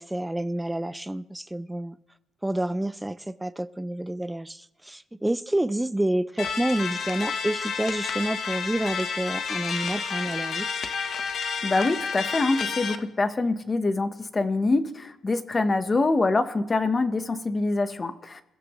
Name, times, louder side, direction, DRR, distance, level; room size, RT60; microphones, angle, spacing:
voice 1, 0.0-2.0 2.4-10.7, right 1 dB, 10° right, 0.5 m, -29 dB
sound 1, 6.4-13.0, left 5 dB, 55° left, 1.2 m, -30 dB
voice 2, 11.6-18.4, left 3 dB, 25° left, 1.1 m, -25 dB
28.0 x 15.5 x 3.2 m
cardioid pair, 125°, 0 cm